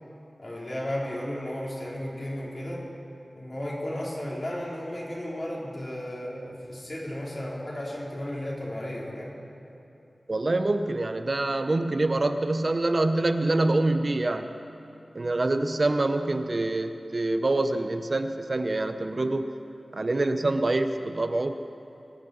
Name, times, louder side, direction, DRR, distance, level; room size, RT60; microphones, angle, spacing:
voice 1, 0.4-2.9 3.3-9.3, left 1 dB, 40° left, -5 dB, 3.8 m, -34 dB
voice 2, 10.3-14.5 15.1-19.5 19.9-21.6, right 2 dB, 50° right, 9 dB, 0.6 m, -25 dB
21.5 x 7.4 x 6.9 m, 2.8 s
wide cardioid pair, 60°, 0 cm